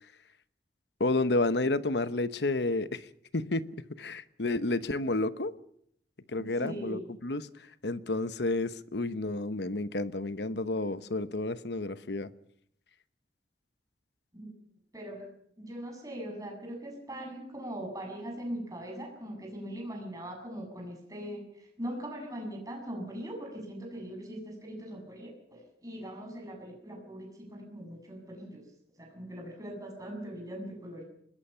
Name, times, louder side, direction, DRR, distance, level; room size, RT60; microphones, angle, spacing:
voice 1, 1.0-3.1 3.3-3.7 4.0-5.5 6.3-7.5 7.8-12.3, left 2 dB, 75° left, 1.0 m, -30 dB
voice 2, 6.4-7.1 14.3-14.5 14.9-15.3 15.6-21.4 21.8-28.6 29.0-31.0, equal, 20° right, 7.2 m, -41 dB
25.5 x 20.5 x 5.7 m
head